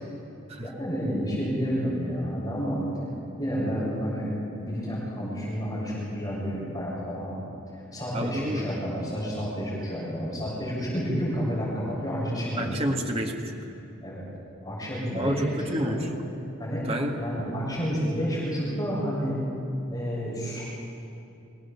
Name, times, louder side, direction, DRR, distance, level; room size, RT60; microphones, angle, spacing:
voice 1, 0.6-2.8 3.4-4.3 4.6-7.4 7.9-12.8 14.0-14.3 14.6-15.4 15.8-16.0 16.6-16.9 17.2-19.4 19.9-20.6, equal, 20° left, -6 dB, 6.9 m, -30 dB
voice 2, 8.1-8.7 12.6-13.7 15.1-16.1 16.8-17.2, equal, 30° right, 2 dB, 1.8 m, -29 dB
24.0 x 17.5 x 7.2 m, 2.6 s
head